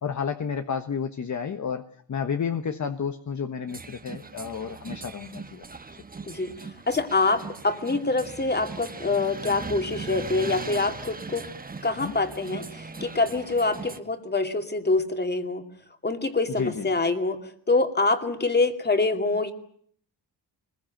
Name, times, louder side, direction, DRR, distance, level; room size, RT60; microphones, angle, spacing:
voice 1, 0.0-5.6 12.0-12.1 16.5-16.9, left 6 dB, 40° left, 8 dB, 1.4 m, -31 dB
sound 1, 3.7-14.0, right 4 dB, 20° right, 1.3 m, -39 dB
voice 2, 6.9-11.4 11.8-12.6 13.0-15.6 16.0-17.4 17.7-19.5, left 3 dB, 20° left, 7 dB, 2.5 m, -25 dB
25.0 x 21.5 x 9.0 m, 0.63 s
cardioid pair, 120°, 45 cm